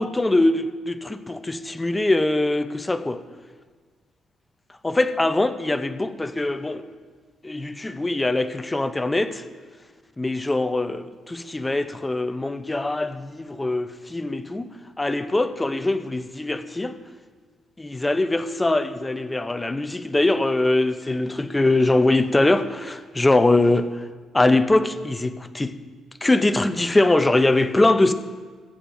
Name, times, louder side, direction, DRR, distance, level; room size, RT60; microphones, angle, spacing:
voice 1, 0.0-3.2 4.8-6.8 7.4-9.4 10.2-14.7 15.0-16.9 17.8-23.9 24.3-25.8 26.2-28.1, left 2 dB, 10° left, 0.5 m, -22 dB
19.5 x 8.6 x 2.6 m
cardioid pair, 145°, 0 cm